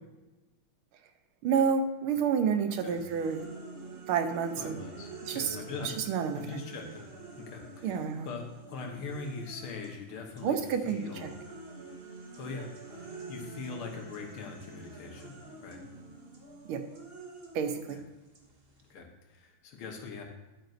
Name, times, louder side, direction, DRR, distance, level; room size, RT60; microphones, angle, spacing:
voice 1, 1.4-3.4 4.1-4.8 5.3-5.5 5.8-6.6 7.8-8.3 10.4-11.3 16.7-16.8 17.5-18.0, right 6 dB, 85° right, 8 dB, 1.7 m, -29 dB
sound 1, 2.9-10.0 10.3-18.9, right 3 dB, 35° right, 1.2 m, -47 dB
voice 2, 4.6-6.0 6.3-7.1 7.4-10.6 10.9-11.3 12.4-15.3 15.6-15.8 17.9-18.0 18.9-20.2, left 4 dB, 90° left, 2 dB, 2.1 m, -42 dB
11.0 x 9.1 x 2.6 m, 1.1 s
omnidirectional pair, 2.3 m